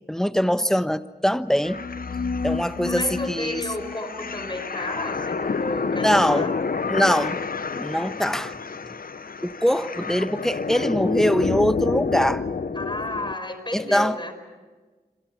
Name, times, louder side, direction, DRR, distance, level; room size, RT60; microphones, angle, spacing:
voice 1, 0.1-1.8 2.4-3.6 6.0-6.5 6.9-7.4 7.7-8.6 9.4-12.4 13.7-14.2, equal, 5° left, 1.1 m, -23 dB
sound 1, 1.6-13.3, left 4 dB, 60° left, 0.9 m, -29 dB
voice 2, 2.8-6.7 12.7-14.3, left 2 dB, 30° left, 5.2 m, -32 dB
27.0 x 26.0 x 6.0 m
cardioid pair, 50°, 16 cm